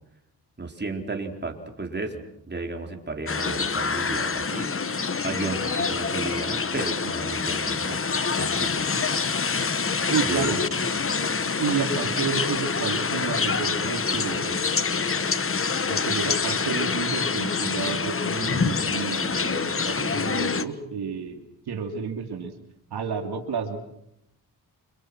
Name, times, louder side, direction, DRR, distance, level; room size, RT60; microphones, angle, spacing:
voice 1, 0.6-4.7 5.2-8.0 8.4-9.0 10.2-10.5 10.8-10.9, right 3 dB, 25° right, 3 dB, 4.1 m, -33 dB
sound 1, 3.3-20.6, left 5 dB, 35° left, 1.3 m, -26 dB
voice 2, 10.1-10.6 11.6-14.6 15.9-22.5 22.9-23.8, right 6 dB, 80° right, 4 dB, 2.7 m, -30 dB
30.0 x 25.5 x 6.2 m, 0.78 s
cardioid pair, 80°, 39 cm